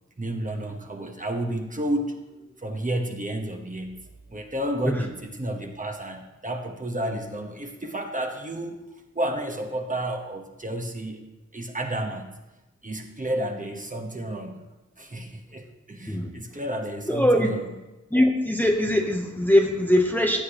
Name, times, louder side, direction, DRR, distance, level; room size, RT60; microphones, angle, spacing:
voice 1, 0.2-8.8 9.1-11.2 11.5-12.4 12.8-14.6 15.0-17.7, right 1 dB, 25° right, 3 dB, 1.1 m, -31 dB
voice 2, 17.1-17.5 18.1-20.4, left 1 dB, 5° left, 2 dB, 0.8 m, -21 dB
15.0 x 8.3 x 3.0 m, 1.0 s
wide cardioid pair, 100°, 29 cm